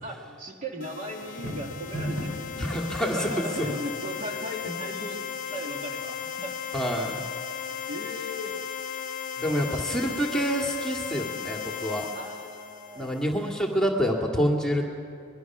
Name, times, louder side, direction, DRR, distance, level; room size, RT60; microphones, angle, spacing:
voice 1, 0.0-2.7 3.1-5.2 5.5-6.6 7.9-8.6 9.4-9.8 12.1-13.1, equal, 40° right, 1 dB, 2.2 m, -38 dB
sound 1, 0.8-13.5, left 7 dB, 40° left, 0.9 m, -36 dB
sound 2, 1.2-2.6, equal, 75° right, 5.8 m, -33 dB
voice 2, 2.6-3.3 3.6-3.7 6.7-7.2 9.4-12.0 13.0-14.8, equal, 5° left, 0 dB, 2.2 m, -27 dB
24.0 x 21.5 x 6.1 m, 2.5 s
head